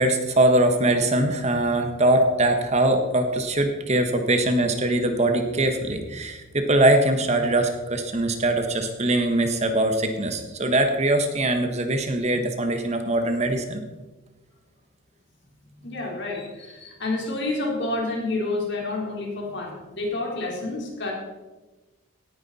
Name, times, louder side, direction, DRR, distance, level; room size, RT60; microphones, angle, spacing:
voice 1, 0.0-13.8, right 1 dB, 30° right, 6 dB, 1.2 m, -22 dB
voice 2, 15.8-21.1, left 2 dB, 55° left, -1 dB, 3.9 m, -29 dB
18.0 x 9.7 x 4.2 m, 1.1 s
head